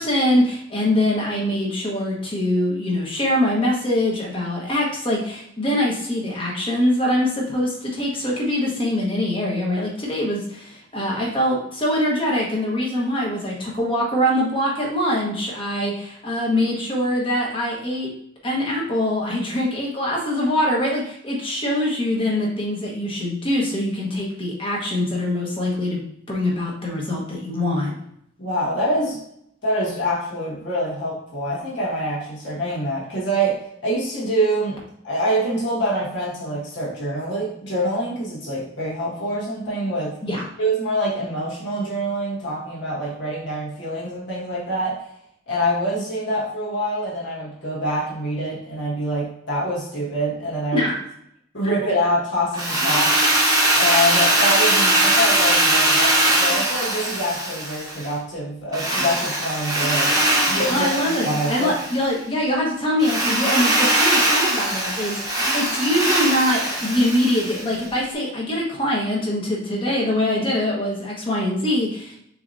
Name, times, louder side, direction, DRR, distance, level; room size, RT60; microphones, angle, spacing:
voice 1, 0.0-18.1 18.4-26.0 26.3-27.9 40.2-40.4 50.7-51.0 51.6-51.9 53.7-53.8 60.7-72.1, left 1 dB, 25° left, -2 dB, 1.2 m, -23 dB
voice 2, 28.4-29.2 29.6-40.2 40.6-45.0 45.5-50.9 51.5-53.3 53.7-61.7, equal, 65° left, -5 dB, 1.5 m, -25 dB
Drill, 52.5-58.1 58.7-62.0 63.0-67.8, right 1 dB, 15° right, 1.1 m, -21 dB
6.5 x 2.9 x 2.6 m, 0.73 s
head